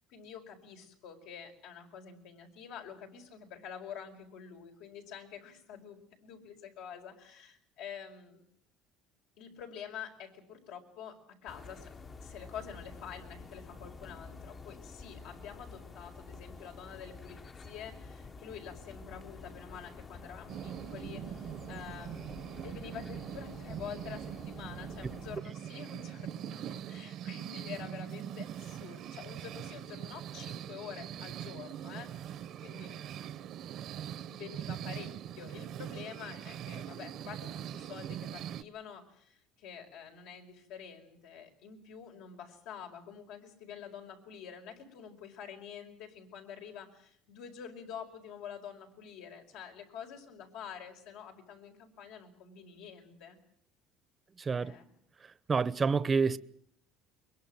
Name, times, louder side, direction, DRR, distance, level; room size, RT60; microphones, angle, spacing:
voice 1, 0.1-8.4 9.4-11.9 12.2-33.6 34.3-53.4 54.6-54.9, left 8 dB, 80° left, 5.0 m, -47 dB
sound 1, 11.5-25.4, left 4 dB, 25° left, 1.0 m, -49 dB
sound 2, 20.5-38.6, right 10 dB, 50° right, 0.9 m, -42 dB
voice 2, 54.4-54.7 55.5-56.4, right 5 dB, 25° right, 0.9 m, -28 dB
22.5 x 22.0 x 7.7 m
cardioid pair, 140°, 0 cm